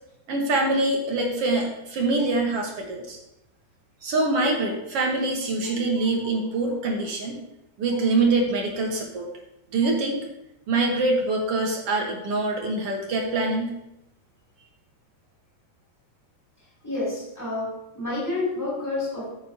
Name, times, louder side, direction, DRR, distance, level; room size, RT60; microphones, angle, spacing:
voice 1, 0.3-3.2 4.0-7.4 7.8-9.3 9.7-10.2 10.7-13.7, right 2 dB, 55° right, 1 dB, 2.0 m, -24 dB
voice 2, 16.8-19.3, left 2 dB, 5° left, -5 dB, 4.3 m, -29 dB
14.0 x 8.8 x 2.9 m, 0.85 s
omnidirectional pair, 3.7 m